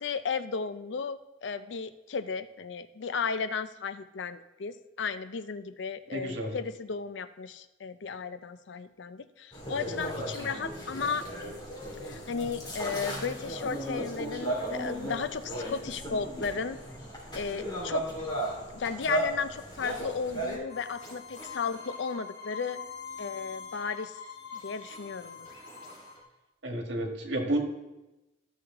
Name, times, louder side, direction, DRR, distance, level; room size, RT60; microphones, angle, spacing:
voice 1, 0.0-11.2 12.0-16.8 17.4-18.2 18.7-22.8 23.2-24.2 24.5-25.5, left 5 dB, 70° left, 12 dB, 0.5 m, -34 dB
voice 2, 6.1-6.6 26.6-27.6, right 1 dB, 75° right, 2 dB, 1.6 m, -31 dB
sound 1, 9.5-20.6, right 1 dB, 25° left, 2.9 m, -35 dB
sound 2, 20.7-26.2, left 5 dB, 40° left, 3.7 m, -44 dB
13.0 x 6.3 x 3.7 m, 1.0 s
head